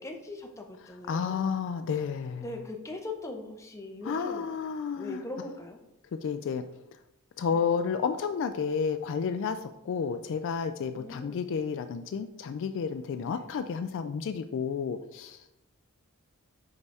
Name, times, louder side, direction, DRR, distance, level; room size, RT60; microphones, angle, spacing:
voice 1, 0.0-1.5 2.4-4.5 5.0-5.8 7.5-7.6 10.9-11.4 13.2-13.4, left 2 dB, 15° left, 3 dB, 0.7 m, -40 dB
voice 2, 1.1-2.4 4.0-5.2 6.2-6.7 7.4-15.6, left 6 dB, 55° left, 9 dB, 0.3 m, -31 dB
5.4 x 4.6 x 4.1 m, 0.88 s
head